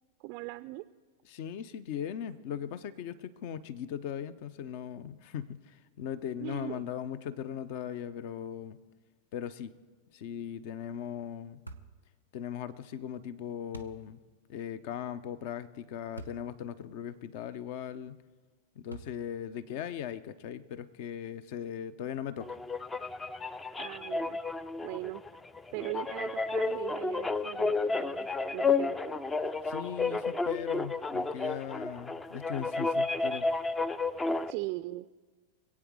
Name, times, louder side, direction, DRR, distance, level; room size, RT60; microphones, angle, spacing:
voice 1, 0.2-0.8 6.4-6.8 23.8-24.4 24.8-25.2 25.7-29.0 34.5-35.1, right 20 dB, 45° right, 12 dB, 0.4 m, -39 dB
voice 2, 1.2-8.8 9.3-9.7 10.1-11.6 12.3-14.2 14.5-18.2 18.7-22.6 29.6-33.5, left 9 dB, 50° left, 16 dB, 0.7 m, -39 dB
sound 1, 11.7-12.0 13.7-14.0 16.2-16.5 17.1-17.2 18.9-19.4, right 2 dB, 85° left, 0.9 m, -45 dB
sound 2, 22.4-34.5, left 3 dB, 10° left, 0.5 m, -32 dB
26.0 x 8.6 x 4.8 m, 1.4 s
figure-of-eight pair, 90°, 0 cm